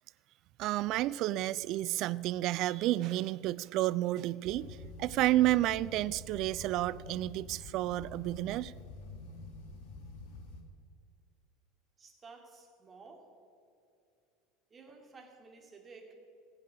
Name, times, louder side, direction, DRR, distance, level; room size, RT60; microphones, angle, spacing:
voice 1, 0.6-8.7, right 15 dB, 50° right, 18 dB, 0.3 m, -31 dB
sound 1, 4.4-10.6, left 3 dB, 55° left, 1.5 m, -48 dB
voice 2, 12.0-13.3 14.7-16.1, right 4 dB, 25° right, 2 dB, 2.3 m, -54 dB
15.5 x 8.5 x 6.1 m, 2.5 s
figure-of-eight pair, 70°, 0 cm